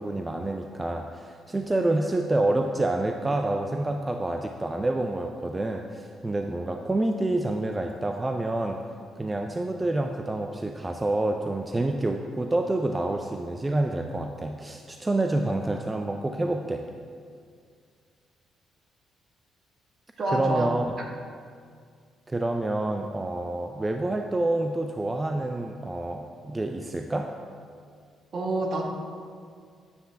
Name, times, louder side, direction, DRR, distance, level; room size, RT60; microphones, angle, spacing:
voice 1, 0.0-8.8 9.2-16.8 20.3-20.8 22.3-27.3, right 2 dB, 20° right, 4 dB, 0.4 m, -28 dB
voice 2, 20.2-20.7 28.3-28.8, right 2 dB, 50° right, 0 dB, 1.4 m, -27 dB
9.6 x 6.8 x 3.4 m, 2.2 s
cardioid pair, 90°, 0 cm